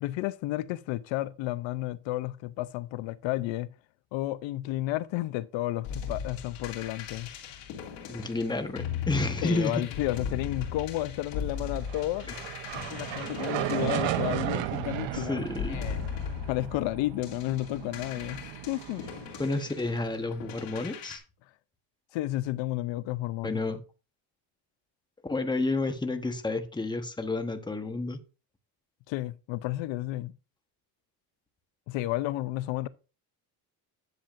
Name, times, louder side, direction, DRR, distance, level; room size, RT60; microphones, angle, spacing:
voice 1, 0.0-3.7 4.1-7.3 9.4-12.4 12.9-16.0 16.5-19.0 22.1-23.6 29.1-30.3 31.9-32.9, left 16 dB, 75° left, 0.6 m, -32 dB
sound 1, 5.8-14.9 15.5-21.2, left 7 dB, 90° left, 2.5 m, -38 dB
voice 2, 8.1-9.8 12.3-12.4 15.1-15.8 19.4-21.2 23.4-23.8 25.3-28.2, left 2 dB, 10° left, 1.1 m, -30 dB
sound 2, 11.6-20.0, right 13 dB, 70° right, 1.0 m, -35 dB
10.5 x 7.2 x 2.5 m
cardioid pair, 110°, 46 cm